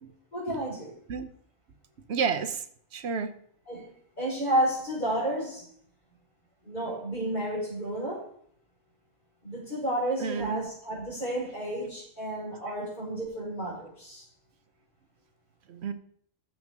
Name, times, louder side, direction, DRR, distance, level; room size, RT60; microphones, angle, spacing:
voice 1, 0.3-0.9 3.7-5.7 6.6-8.2 9.4-14.2, right 1 dB, 35° left, -11 dB, 4.9 m, -31 dB
voice 2, 2.1-2.6 2.9-3.3 10.2-10.6 15.7-15.9, right 5 dB, 65° right, 10 dB, 1.1 m, -30 dB
13.5 x 7.4 x 3.7 m, 0.63 s
omnidirectional pair, 1.2 m